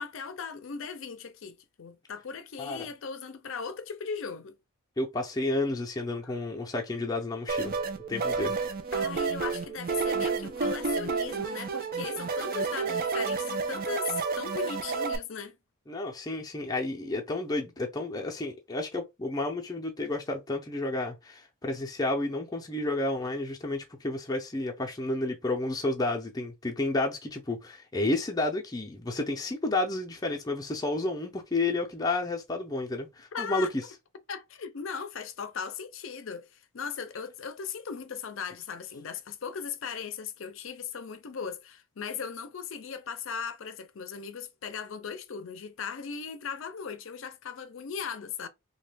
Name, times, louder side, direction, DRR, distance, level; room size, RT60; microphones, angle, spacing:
voice 1, 0.0-4.6 6.2-6.3 8.9-15.6 33.3-33.7 34.3-48.5, left 6 dB, 65° left, 0.5 m, -38 dB
voice 2, 5.0-7.7 8.1-8.5 15.9-33.7, left 2 dB, 15° left, 0.5 m, -31 dB
sound 1, 7.5-15.2, right 4 dB, 45° right, 0.4 m, -30 dB
3.0 x 2.2 x 3.3 m
head